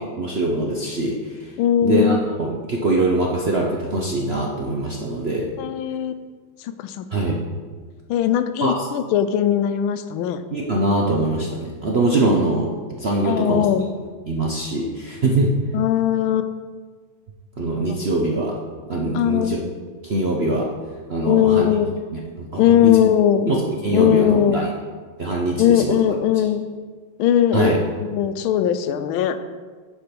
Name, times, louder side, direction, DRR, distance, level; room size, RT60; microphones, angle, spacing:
voice 1, 0.2-1.5 1.8-5.5 7.1-7.4 8.6-8.9 10.5-12.7 13.0-13.7 14.3-15.5 17.6-18.5 18.9-19.6 20.0-20.7 21.1-21.7 22.1-23.0 23.5-24.7 25.2-26.0 27.5-27.8, right 2 dB, 55° right, -2 dB, 0.7 m, -22 dB
voice 2, 1.6-2.3 5.6-6.2 6.8-7.0 8.1-10.4 13.2-13.9 15.7-16.5 17.9-18.0 19.1-19.6 21.2-21.9 22.6-23.5 23.9-24.7 25.6-26.7 27.2-27.7 28.1-29.4, left 10 dB, 85° left, 11 dB, 1.4 m, -19 dB
10.0 x 5.1 x 5.2 m, 1.5 s
omnidirectional pair, 2.2 m